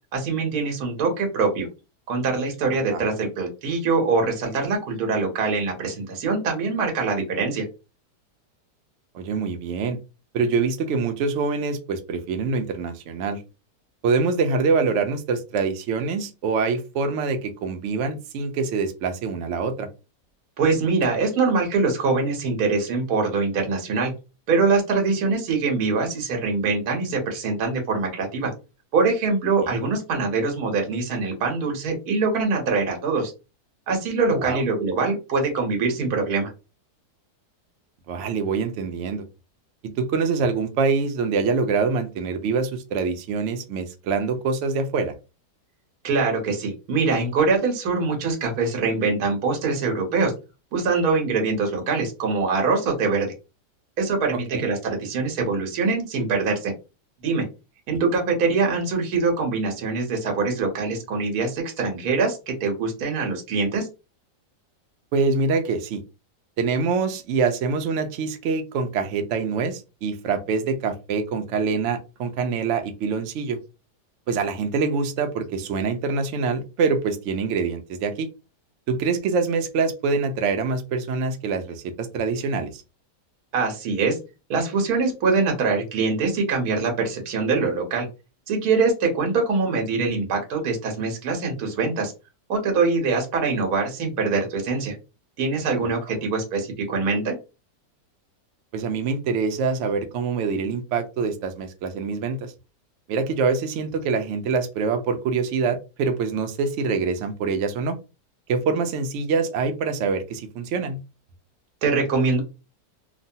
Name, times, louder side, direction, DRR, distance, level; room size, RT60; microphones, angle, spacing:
voice 1, 0.1-1.7 2.1-7.6 20.6-24.1 24.5-28.5 28.9-33.3 33.9-36.5 46.0-50.3 50.7-53.3 54.0-56.7 57.2-57.4 57.9-63.9 83.5-84.2 84.5-88.1 88.5-92.1 92.5-94.9 95.4-97.3 111.8-112.4, right 4 dB, 65° right, 2 dB, 1.3 m, -23 dB
voice 2, 9.1-10.0 10.3-13.4 14.0-19.9 29.7-29.8 34.3-34.6 38.1-39.2 39.8-45.1 54.5-54.7 65.1-66.0 66.6-73.6 74.3-78.3 78.9-82.8 90.0-90.1 96.1-96.3 98.7-102.5 103.1-108.0 108.5-111.0, right 4 dB, 85° right, 7 dB, 0.6 m, -25 dB
3.0 x 2.2 x 2.7 m, 0.29 s
omnidirectional pair, 1.8 m